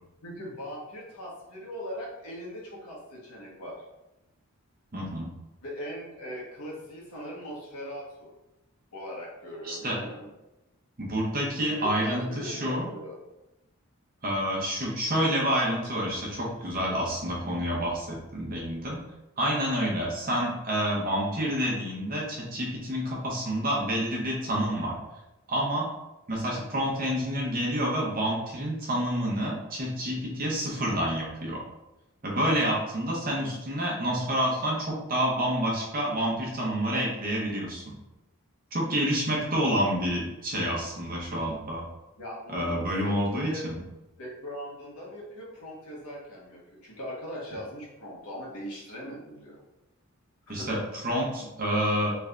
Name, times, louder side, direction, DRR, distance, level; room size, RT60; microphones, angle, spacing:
voice 1, 0.2-3.8 5.6-8.3 8.9-10.3 11.8-13.2 42.2-42.8 43.0-43.6 44.2-49.6 50.5-50.7, equal, 85° left, -4 dB, 1.1 m, -40 dB
voice 2, 4.9-5.3 9.6-10.0 11.0-12.9 14.2-19.0 19.4-25.0 25.5-25.9 26.3-31.6 32.2-38.0 38.7-41.8 42.5-43.8 50.5-52.2, equal, 40° right, -3 dB, 0.8 m, -28 dB
3.3 x 2.5 x 3.3 m, 0.98 s
head